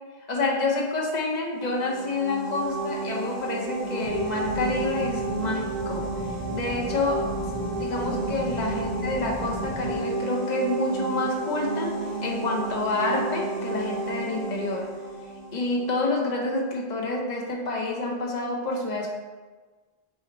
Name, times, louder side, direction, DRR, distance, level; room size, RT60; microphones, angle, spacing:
voice 1, 0.3-6.0 6.5-7.2 7.7-11.9 12.2-14.9 15.5-19.1, left 2 dB, 45° left, -2 dB, 0.8 m, -28 dB
sound 1, 1.5-16.2, right 2 dB, 80° left, 1.8 m, -32 dB
sound 2, 4.0-10.0, left 1 dB, 45° right, 0.4 m, -37 dB
5.7 x 2.1 x 4.0 m, 1.4 s
omnidirectional pair, 1.1 m